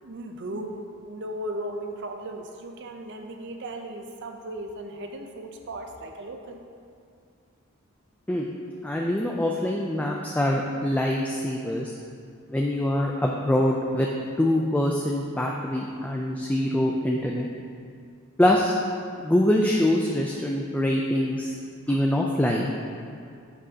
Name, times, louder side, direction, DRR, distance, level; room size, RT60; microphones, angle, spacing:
voice 1, 0.0-6.6, right 1 dB, 60° right, 4 dB, 0.6 m, -36 dB
voice 2, 8.8-11.9 12.5-14.1 14.4-17.5 18.4-18.7 19.2-21.5 21.9-22.7, left 1 dB, 10° left, -1 dB, 0.3 m, -24 dB
10.0 x 6.1 x 2.8 m, 2.3 s
head